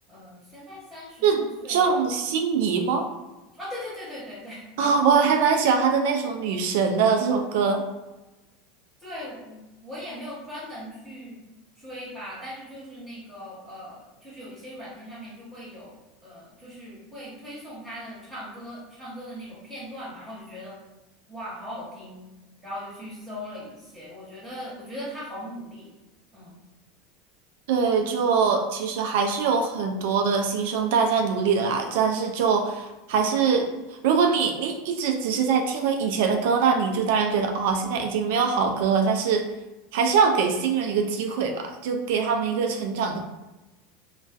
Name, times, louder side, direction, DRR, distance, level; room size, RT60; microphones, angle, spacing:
voice 1, 0.1-2.1 3.6-4.9 9.0-11.4 11.8-20.8 21.3-22.3 22.6-25.9 26.3-26.6, equal, 15° right, -10 dB, 1.1 m, -39 dB
voice 2, 1.7-3.1 4.8-7.8 27.7-33.7 34.0-39.4 39.9-43.3, right 5 dB, 70° right, 4 dB, 0.3 m, -23 dB
2.3 x 2.2 x 2.4 m, 1.0 s
hypercardioid pair, 95°, 0 cm